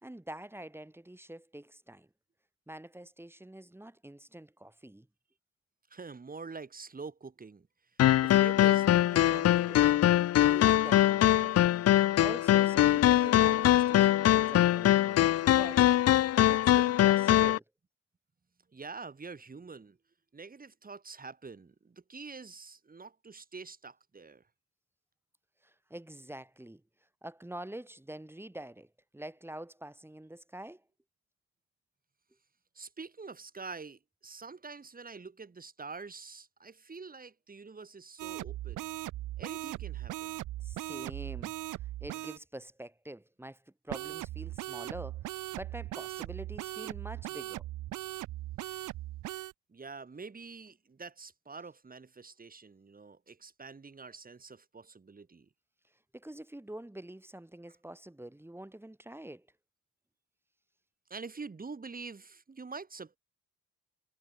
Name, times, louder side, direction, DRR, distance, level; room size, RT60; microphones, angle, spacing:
voice 1, 0.0-2.1 2.7-5.1 10.4-11.6 12.2-16.0 16.4-17.6 25.6-26.8 27.2-30.8 40.6-41.5 41.8-47.6 56.1-59.5, right 1 dB, 10° right, 3.2 m, -46 dB
voice 2, 5.9-7.7 8.2-10.1 18.7-20.0 20.3-24.4 32.7-38.9 39.4-40.4 49.7-55.5 61.1-63.2, right 4 dB, 30° right, 4.6 m, -46 dB
sound 1, 8.0-17.6, left 13 dB, 55° left, 0.6 m, -23 dB
sound 2, 38.2-42.4 43.9-49.5, right 16 dB, 90° right, 3.0 m, -39 dB
cardioid pair, 90°, 30 cm